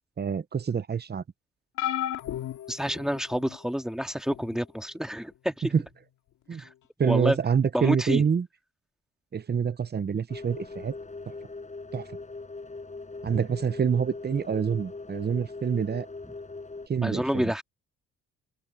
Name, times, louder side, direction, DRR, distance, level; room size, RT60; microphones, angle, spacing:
voice 1, 0.2-1.2 5.7-5.8 6.5-6.6 7.0-8.4 9.3-10.9 11.9-12.0 13.2-16.1 16.9-17.4, right 7 dB, 35° right, 1.0 m, -26 dB
sound 1, 1.8-3.6 4.3-4.6 5.9-6.0, left 12 dB, 80° left, 2.2 m, -33 dB
voice 2, 2.7-5.7 6.6-6.7 7.0-7.4 7.7-8.2 17.0-17.6, equal, ahead, 2.0 m, -28 dB
sound 2, 10.3-16.9, left 3 dB, 25° left, 5.8 m, -41 dB
open air
cardioid pair, 90°, 30 cm